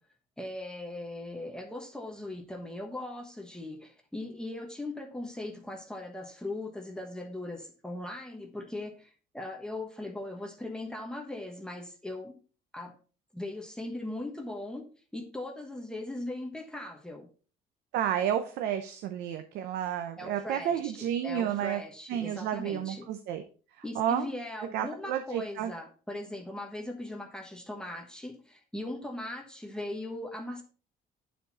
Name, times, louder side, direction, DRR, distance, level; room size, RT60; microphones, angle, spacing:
voice 1, 0.4-12.4 12.7-13.0 13.3-17.3 20.2-23.1 23.8-30.6, left 1 dB, 5° left, 2 dB, 1.2 m, -39 dB
voice 2, 17.9-21.8 22.1-23.4 23.9-24.3 24.7-25.7, right 10 dB, 80° right, 7 dB, 0.7 m, -31 dB
9.1 x 4.5 x 4.1 m, 0.38 s
cardioid pair, 110°, 17 cm